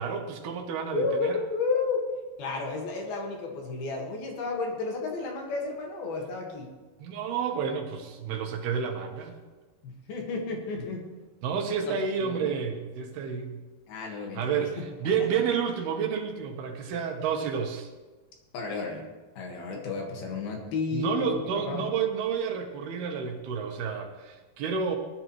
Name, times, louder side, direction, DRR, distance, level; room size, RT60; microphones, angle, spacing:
voice 1, 0.0-1.4 7.0-9.4 11.4-13.6 14.0-17.9 20.9-25.0, right 6 dB, 75° right, 4 dB, 2.9 m, -30 dB
voice 2, 0.9-2.0 2.4-6.7 9.8-11.1 11.8-11.9 12.2-12.5 13.9-14.9 18.5-19.0 19.4-21.2 21.7-21.8, left 4 dB, 65° left, 1 dB, 3.4 m, -32 dB
18.5 x 11.0 x 3.1 m, 1.2 s
omnidirectional pair, 4.8 m